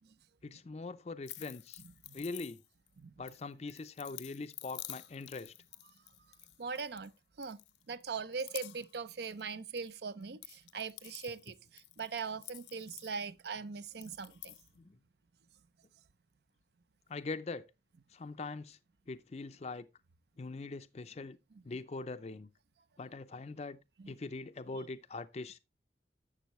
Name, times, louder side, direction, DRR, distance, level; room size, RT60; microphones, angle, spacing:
voice 1, 0.4-1.8 2.1-2.6 3.2-5.5 14.8-15.0 17.1-17.7 18.1-18.8 19.1-19.9 20.4-21.4 21.7-22.5 23.0-23.8 24.1-25.6, left 3 dB, 35° left, 0.4 m, -42 dB
sound 1, 1.2-2.9 3.3-7.1 7.4-8.0 8.3-9.0 9.2-9.9 10.2-13.5 13.9-14.7, left 16 dB, 80° left, 0.7 m, -50 dB
voice 2, 6.6-7.1 7.4-7.6 7.9-14.5 21.5-21.6 24.0-24.1, right 5 dB, 65° right, 0.5 m, -41 dB
11.5 x 7.3 x 3.0 m
head